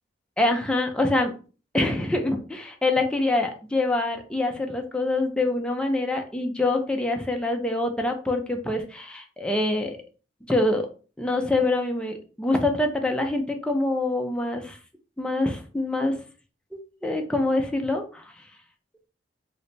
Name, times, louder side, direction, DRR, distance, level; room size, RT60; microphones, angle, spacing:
voice 1, 0.4-1.3 1.7-10.0 10.5-10.9 11.2-14.8 15.2-16.2 16.7-18.2, left 2 dB, 5° left, 3 dB, 0.5 m, -25 dB
3.2 x 2.1 x 4.0 m, 0.36 s
head